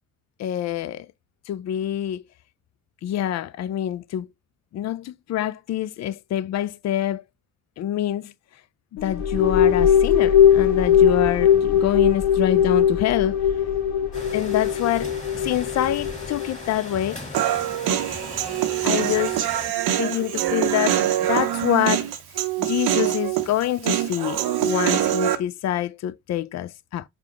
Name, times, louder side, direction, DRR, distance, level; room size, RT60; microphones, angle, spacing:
voice 1, 0.4-1.1 1.5-2.2 3.0-4.3 4.7-7.2 7.8-8.3 9.0-13.4 14.3-17.3 18.8-19.4 19.9-22.1 22.6-27.0, left 12 dB, 45° left, 0.4 m, -26 dB
sound 1, 9.0-16.5, left 9 dB, 90° left, 0.9 m, -19 dB
sound 2, 14.1-19.7, left 2 dB, 20° left, 1.8 m, -38 dB
Human voice, 17.3-25.4, right 11 dB, 65° right, 0.7 m, -24 dB
5.0 x 2.2 x 3.5 m
hypercardioid pair, 50°, 40 cm